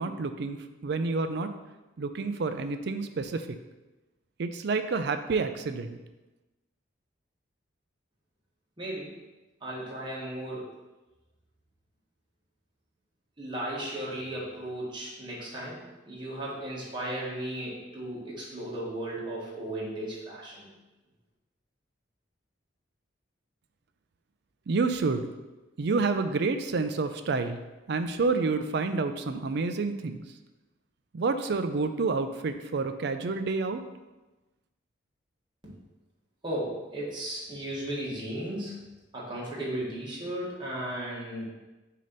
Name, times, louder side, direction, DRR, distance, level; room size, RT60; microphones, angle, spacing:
voice 1, 0.0-1.5 2.0-3.6 4.4-6.0 24.7-25.3 25.8-30.2 31.1-33.8, right 4 dB, 60° right, 9 dB, 0.4 m, -29 dB
voice 2, 8.8-9.2 9.6-10.7 13.4-20.7 35.6-35.8 36.4-38.8 39.1-41.4, right 1 dB, 25° right, -6 dB, 1.4 m, -35 dB
6.3 x 2.9 x 5.2 m, 1.1 s
head